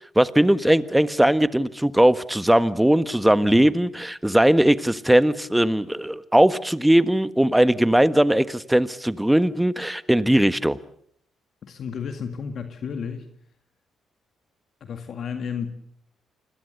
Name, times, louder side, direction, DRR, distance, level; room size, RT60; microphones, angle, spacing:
voice 1, 0.1-10.8, right 1 dB, 5° right, 14 dB, 1.4 m, -19 dB
voice 2, 11.6-13.3 14.8-15.7, left 6 dB, 60° left, 7 dB, 2.0 m, -32 dB
29.0 x 21.5 x 6.8 m, 0.65 s
hypercardioid pair, 50°, 0 cm